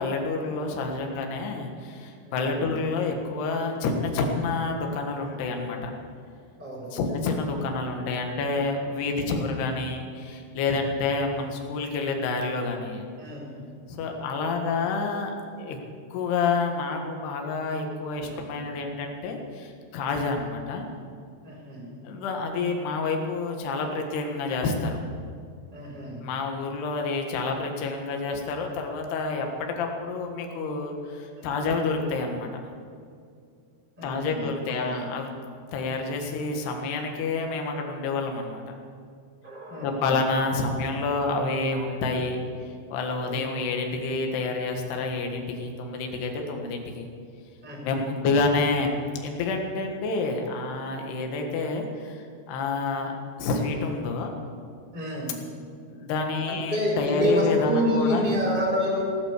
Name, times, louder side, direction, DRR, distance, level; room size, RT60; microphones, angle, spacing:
voice 1, 0.0-5.9 6.9-13.1 13.9-15.8 16.1-20.9 22.0-25.0 26.2-32.5 34.0-35.3 35.7-38.8 39.8-42.4 42.9-47.1 47.8-54.3 55.9-58.3, left 3 dB, 70° left, 3 dB, 3.4 m, -28 dB
voice 2, 2.2-2.7 5.2-5.4 6.6-7.0 13.2-13.6 18.3-18.6 21.4-21.8 25.7-26.2 31.3-31.7 34.0-35.1 39.4-40.1 43.3-43.4 47.6-48.0 54.9-55.4 56.5-59.1, equal, 10° right, -2 dB, 3.9 m, -29 dB
18.0 x 8.8 x 8.1 m, 2.3 s
omnidirectional pair, 5.2 m